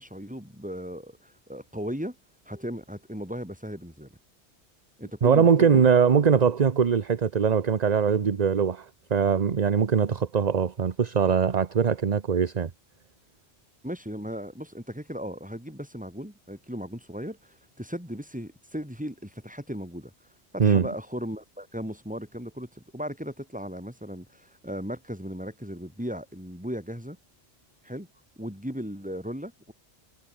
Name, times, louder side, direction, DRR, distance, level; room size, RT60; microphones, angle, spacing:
voice 1, 0.0-2.2 2.5-4.1 5.0-5.8 13.8-20.1 20.5-27.2 27.8-28.1 28.4-29.7, equal, 5° right, 6.4 m, -36 dB
voice 2, 5.2-12.7 20.6-20.9, right 6 dB, 40° right, 0.9 m, -22 dB
omnidirectional pair, 1.1 m